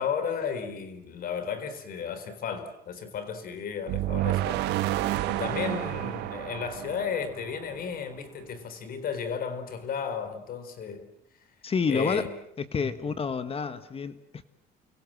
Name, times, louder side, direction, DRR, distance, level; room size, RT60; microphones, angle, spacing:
voice 1, 0.0-4.6 5.3-11.1 11.9-12.3 12.8-13.2, left 6 dB, 60° left, 4.1 m, -34 dB
sound 1, 3.9-7.9, right 15 dB, 85° right, 1.5 m, -30 dB
voice 2, 11.6-12.2 12.7-14.4, left 5 dB, 35° left, 1.6 m, -29 dB
29.5 x 24.0 x 7.6 m
cardioid pair, 110°, 17 cm